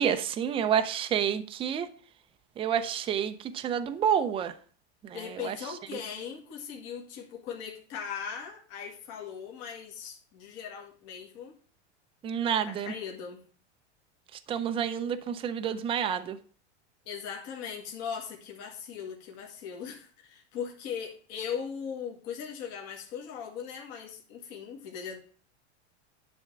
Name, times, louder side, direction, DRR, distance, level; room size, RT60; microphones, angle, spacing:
voice 1, 0.0-1.9 2.6-4.5 5.0-5.6 12.2-12.9 14.5-16.4, right 8 dB, 15° right, 0.5 m, -29 dB
voice 2, 5.1-11.5 12.7-13.4 17.1-25.2, left 7 dB, 45° left, 2.0 m, -39 dB
10.0 x 3.6 x 6.7 m
supercardioid pair, 135°, 34 cm